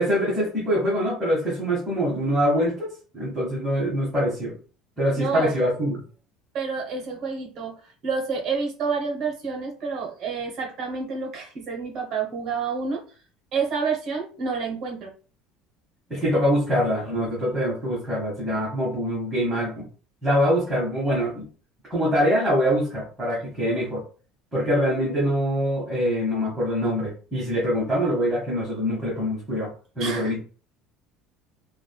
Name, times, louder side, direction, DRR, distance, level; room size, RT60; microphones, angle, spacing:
voice 1, 0.0-4.6 5.0-6.0 16.1-19.9 20.2-21.5 21.9-24.0 24.5-29.7 30.0-30.4, equal, 10° right, -7 dB, 1.1 m, -24 dB
voice 2, 5.1-5.5 6.5-13.0 13.5-15.1 30.0-30.4, right 5 dB, 40° right, 1 dB, 1.0 m, -29 dB
3.4 x 2.2 x 2.2 m, 0.38 s
cardioid pair, 155°, 0 cm